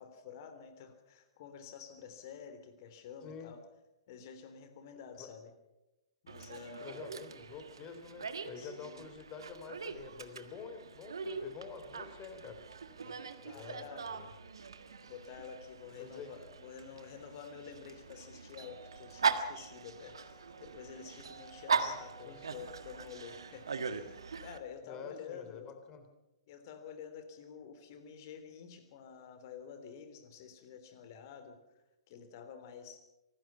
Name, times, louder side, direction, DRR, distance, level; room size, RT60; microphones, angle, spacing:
voice 1, 0.0-3.6 4.1-5.5 6.2-7.1 8.6-9.1 12.9-14.1 15.0-25.7 26.5-33.0, left 7 dB, 40° left, 9 dB, 3.5 m, -49 dB
voice 2, 3.2-3.5 5.2-5.3 6.8-12.6 13.4-14.3 16.0-16.3 21.8-21.9 22.3-22.5 24.8-26.0, left 6 dB, 25° left, 7 dB, 3.5 m, -48 dB
Dog, 6.3-24.6, right 5 dB, 65° right, 1.6 m, -40 dB
25.5 x 19.5 x 5.7 m, 0.97 s
figure-of-eight pair, 115°, 3 cm